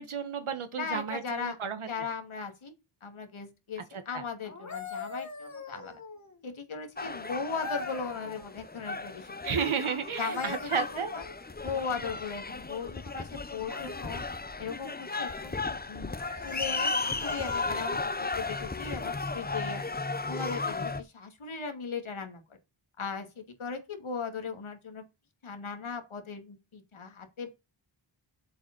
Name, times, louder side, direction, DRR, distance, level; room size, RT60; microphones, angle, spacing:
voice 1, 0.0-1.9 3.9-4.2 9.4-11.1, right 6 dB, 80° right, 1.3 m, -32 dB
voice 2, 0.7-1.6 1.9-2.7 3.0-6.0 6.4-9.5 10.2-11.2 11.6-14.2 14.6-16.1 16.4-19.8 20.3-22.4 23.0-25.0 25.4-27.5, left 5 dB, 75° left, 2.4 m, -38 dB
sound 1, 4.4-6.4 7.6-8.5 9.9-11.6 13.7-14.3 15.1-15.5 16.2-18.0 19.9-20.1, left 3 dB, 35° left, 2.4 m, -43 dB
sound 2, 7.0-21.0, left 3 dB, 20° left, 0.7 m, -35 dB
7.6 x 5.1 x 6.0 m
wide cardioid pair, 90°, 48 cm